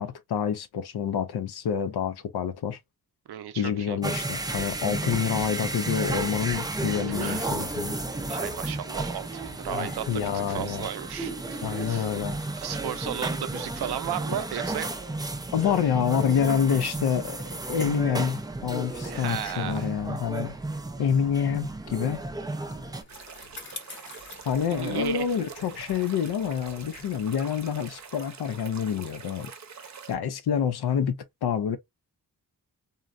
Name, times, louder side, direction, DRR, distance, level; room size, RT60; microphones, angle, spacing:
voice 1, 0.0-2.8 3.6-8.0 9.7-10.9 11.6-12.4 15.5-20.6 21.0-22.2 24.4-29.5 30.1-31.8, left 8 dB, 85° left, 0.5 m, -27 dB
voice 2, 3.3-4.0 5.4-5.5 7.1-7.5 8.3-12.1 12.6-14.9 19.0-19.9 24.7-25.4 25.8-26.1, right 10 dB, 90° right, 0.5 m, -35 dB
sound 1, 4.0-23.0, right 2 dB, 10° right, 0.4 m, -33 dB
Bicycle, 22.1-28.7, left 3 dB, 30° left, 0.7 m, -48 dB
sound 2, 23.1-30.1, right 6 dB, 50° right, 0.7 m, -45 dB
3.8 x 2.1 x 2.4 m
wide cardioid pair, 120°, 38 cm